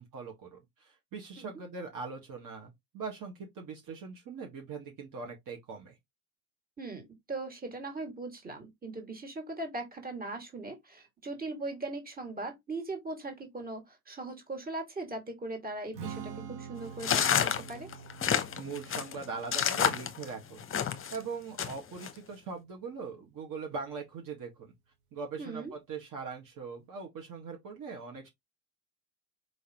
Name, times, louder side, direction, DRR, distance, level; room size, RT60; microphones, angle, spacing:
voice 1, 0.0-6.0 18.6-20.7 21.1-24.7 25.1-28.3, right 5 dB, 45° right, 1.7 m, -41 dB
voice 2, 6.8-17.9 25.4-25.7, right 2 dB, 20° right, 2.2 m, -39 dB
Strum, 15.9-22.2, right 7 dB, 65° right, 1.9 m, -47 dB
sound 1, 17.0-21.2 21.6-22.1, left 8 dB, 30° left, 0.9 m, -29 dB
5.0 x 3.6 x 3.0 m
hypercardioid pair, 90°, 46 cm